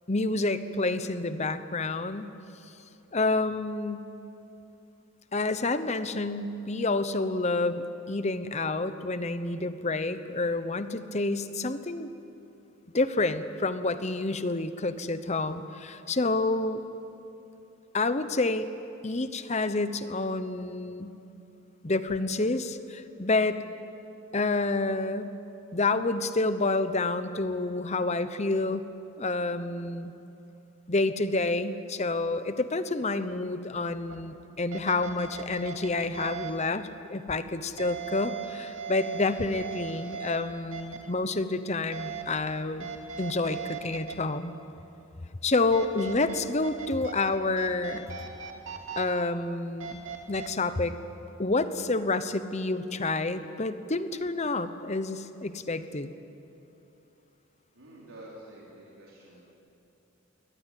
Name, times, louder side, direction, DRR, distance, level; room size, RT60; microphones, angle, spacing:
voice 1, 0.1-2.3 3.1-4.1 5.3-12.1 12.9-16.8 17.9-18.7 19.0-21.1 21.8-23.6 24.3-25.3 25.7-28.9 29.2-30.1 30.9-42.9 43.2-44.5 45.4-48.1 49.0-50.0 50.3-50.9 51.4-56.1, left 3 dB, 30° left, 11 dB, 0.9 m, -29 dB
sound 1, 34.1-34.2 34.7-36.5 37.8-40.4 40.7-41.0 41.9-42.4 42.8-44.1 45.7-47.3 47.6-49.0 49.8-50.5, right 7 dB, 65° right, 2.6 m, -38 dB
voice 2, 57.8-59.4, right 1 dB, 85° right, -5 dB, 4.2 m, -48 dB
23.0 x 18.0 x 9.3 m, 2.9 s
head